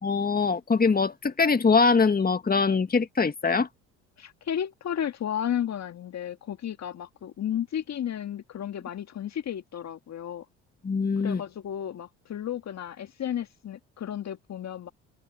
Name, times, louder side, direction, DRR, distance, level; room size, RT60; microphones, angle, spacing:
voice 1, 0.0-3.7 10.8-11.4, left 4 dB, 25° left, 2.1 m, -23 dB
voice 2, 4.2-10.5 11.2-14.9, left 9 dB, 45° left, 1.9 m, -33 dB
open air
hypercardioid pair, 55°, 36 cm